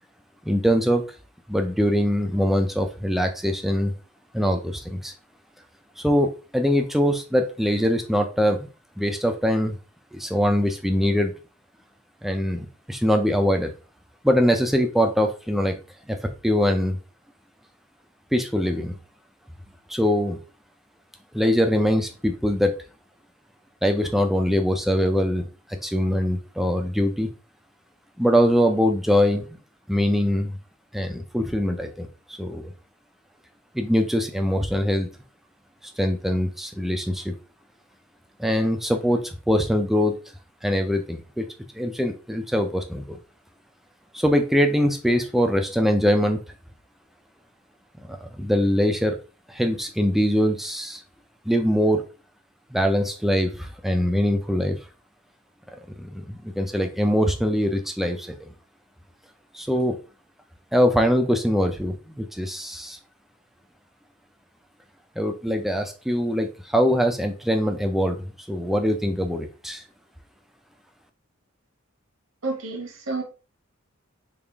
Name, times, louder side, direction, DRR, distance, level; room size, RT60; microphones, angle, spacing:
voice 1, 0.5-1.0 1.5-3.9 4.3-5.1 6.0-8.7 9.0-9.8 10.1-11.3 12.2-13.7 14.2-15.7 16.1-17.0 18.3-18.9 19.9-20.4 21.3-22.8 23.8-27.3 28.2-29.5 29.9-30.6 30.9-32.7 33.7-35.1 36.0-37.3 38.4-40.1 40.6-41.5 41.7-43.2 44.1-46.4 48.1-49.2 49.5-51.0 51.5-52.1 52.7-54.8 56.0-58.5 59.5-60.0 60.7-63.0 65.2-69.8, equal, ahead, 0.4 m, -23 dB
voice 2, 72.4-73.2, right 3 dB, 75° right, 1.0 m, -29 dB
3.6 x 2.4 x 3.4 m
head